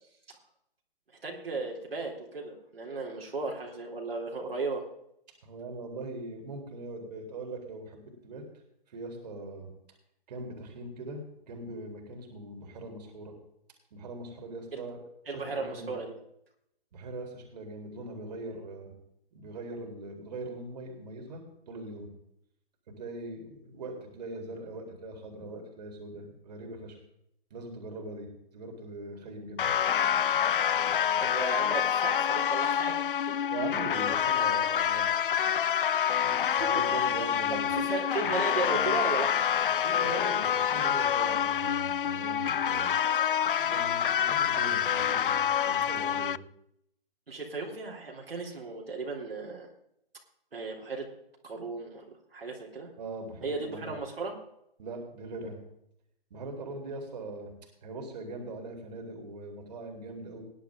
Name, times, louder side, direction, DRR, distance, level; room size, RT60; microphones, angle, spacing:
voice 1, 1.2-4.8 14.7-14.9 15.3-16.1 31.2-33.4 36.3-36.7 37.5-39.3 47.3-49.7 50.5-51.1 51.4-52.9 53.4-54.4, right 3 dB, 75° right, -1 dB, 3.8 m, -35 dB
voice 2, 5.4-8.4 8.9-9.7 10.3-13.3 13.9-15.9 16.9-18.9 19.3-22.1 22.9-27.0 27.5-29.8 33.5-35.1 36.7-37.7 39.8-43.0 43.6-46.4 53.0-53.9 54.8-55.6 56.3-57.5 57.8-60.4, right 2 dB, 45° right, 2 dB, 3.9 m, -41 dB
sound 1, 29.6-46.4, left 9 dB, 60° left, 0.5 m, -27 dB
19.0 x 11.5 x 3.8 m, 0.76 s
figure-of-eight pair, 145°, 30 cm